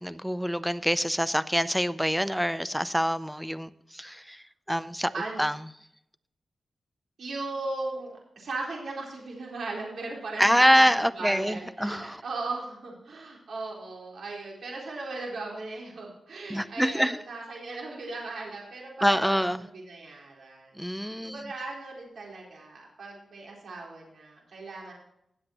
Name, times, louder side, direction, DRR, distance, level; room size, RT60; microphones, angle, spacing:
voice 1, 0.0-5.1 5.4-5.6 10.4-12.2 16.5-17.2 19.0-19.7 20.8-21.4, equal, ahead, 14 dB, 0.5 m, -25 dB
voice 2, 7.2-10.4 11.0-24.9, right 3 dB, 75° right, -2 dB, 4.1 m, -38 dB
17.5 x 7.9 x 3.0 m, 0.77 s
wide cardioid pair, 120°, 0 cm